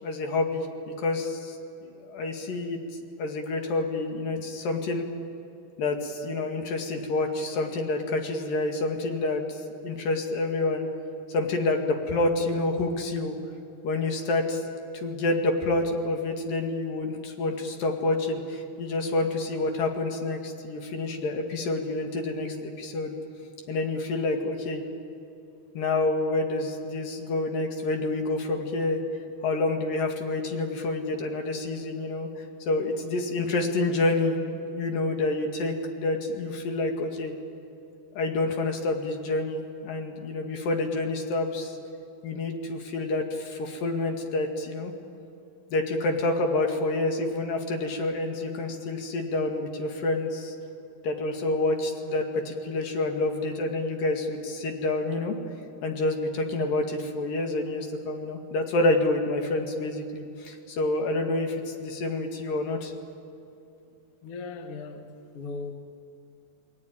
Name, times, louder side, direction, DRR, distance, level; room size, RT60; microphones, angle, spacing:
voice 1, 0.0-2.8 3.2-5.1 5.8-10.9 11.3-13.4 13.8-14.6 14.9-23.2 23.7-24.8 25.8-29.0 29.4-32.3 32.7-34.4 34.7-37.3 38.2-41.8 42.2-44.9 45.7-50.5 51.0-55.4 55.8-62.9, left 2 dB, 65° left, 3 dB, 3.7 m, -28 dB
voice 2, 64.2-65.7, left 4 dB, 50° left, 5 dB, 2.1 m, -38 dB
28.0 x 20.5 x 9.1 m, 2.7 s
omnidirectional pair, 4.3 m